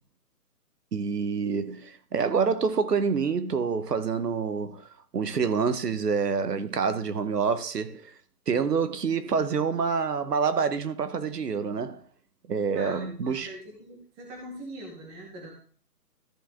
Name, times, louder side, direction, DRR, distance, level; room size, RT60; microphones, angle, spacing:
voice 1, 0.9-8.1 8.5-12.0 12.5-13.5, right 5 dB, 85° right, 1.2 m, -27 dB
voice 2, 12.7-15.5, right 1 dB, 10° right, 1.0 m, -42 dB
13.5 x 4.8 x 3.6 m
hypercardioid pair, 160°, 47 cm